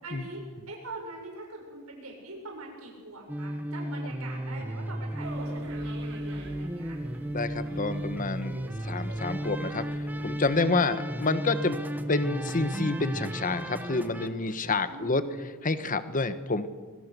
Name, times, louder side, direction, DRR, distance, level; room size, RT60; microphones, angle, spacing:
voice 1, 0.0-7.0 14.9-15.2, right 2 dB, 90° right, 0 dB, 6.9 m, -43 dB
sound 1, 3.3-14.3, right 1 dB, 10° right, 1.4 m, -34 dB
sound 2, 5.2-10.6, right 1 dB, 65° right, 4.2 m, -46 dB
voice 2, 7.3-11.8 12.1-15.2 15.6-16.7, left 3 dB, 40° left, 11 dB, 1.2 m, -28 dB
25.5 x 22.5 x 6.9 m, 1.5 s
head